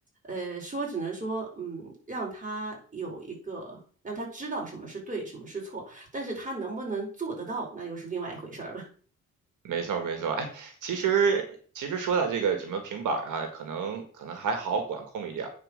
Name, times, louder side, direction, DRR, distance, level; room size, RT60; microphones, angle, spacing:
voice 1, 0.2-3.8 4.0-8.9, right 3 dB, 25° right, -1 dB, 4.9 m, -35 dB
voice 2, 9.6-15.5, right 6 dB, 85° right, 5 dB, 1.7 m, -29 dB
9.2 x 4.6 x 6.4 m, 0.43 s
cardioid pair, 85°, 30 cm